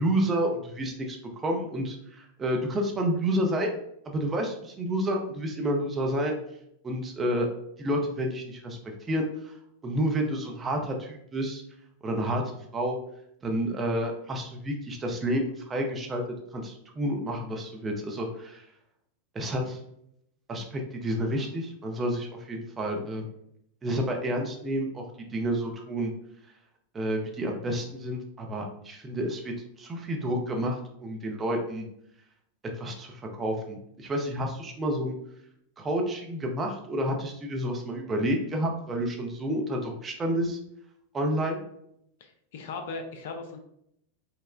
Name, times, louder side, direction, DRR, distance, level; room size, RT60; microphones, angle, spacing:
voice 1, 0.0-3.7 4.1-6.4 6.8-7.5 7.8-8.8 9.1-9.5 9.8-11.6 12.0-12.4 12.7-13.0 13.4-16.2 16.5-18.7 19.3-19.8 20.5-23.3 23.8-25.0 25.3-26.1 26.9-31.9 32.8-35.2 35.8-40.6 41.1-41.6, right 1 dB, 20° right, 1 dB, 0.6 m, -29 dB
voice 2, 42.2-43.6, left 3 dB, 55° left, 5 dB, 0.4 m, -38 dB
4.1 x 2.1 x 2.4 m, 0.74 s
figure-of-eight pair, 90°, 0 cm